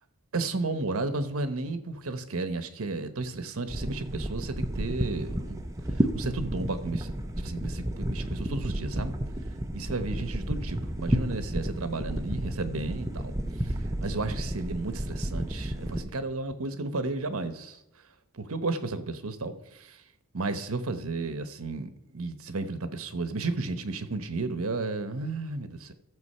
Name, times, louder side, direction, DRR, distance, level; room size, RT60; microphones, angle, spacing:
voice 1, 0.3-5.6 5.9-9.2 9.7-13.3 13.6-17.8 18.3-20.0 20.3-25.9, right 3 dB, 75° right, 1.0 m, -33 dB
sound 1, 3.7-16.0, right 1 dB, 15° right, 0.7 m, -32 dB
13.0 x 7.2 x 5.5 m
head